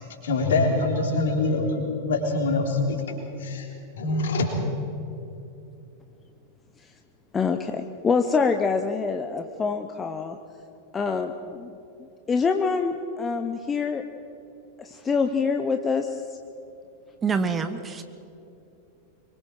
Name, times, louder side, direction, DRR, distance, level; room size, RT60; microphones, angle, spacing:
voice 1, 0.2-3.0 3.4-3.7 3.9-4.5, left 3 dB, 60° left, 2 dB, 3.6 m, -24 dB
voice 2, 7.3-10.4 10.9-11.7 12.3-14.0 14.8-16.2, left 5 dB, 20° left, 6 dB, 0.9 m, -25 dB
voice 3, 17.2-18.0, right 5 dB, 20° right, 10 dB, 1.1 m, -26 dB
25.0 x 23.0 x 4.6 m, 2.8 s
figure-of-eight pair, 90°, 0 cm